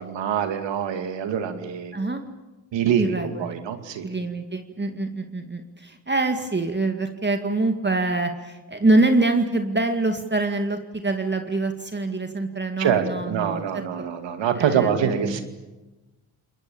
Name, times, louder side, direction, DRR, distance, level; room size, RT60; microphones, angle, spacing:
voice 1, 0.0-1.9 2.7-4.2 12.8-15.4, right 8 dB, 70° right, 8 dB, 2.4 m, -25 dB
voice 2, 1.9-2.2 3.0-3.6 4.0-13.6 14.0-14.1 14.6-15.4, right 2 dB, 25° right, 5 dB, 2.2 m, -25 dB
29.5 x 21.5 x 7.2 m, 1.1 s
hypercardioid pair, 50°, 45 cm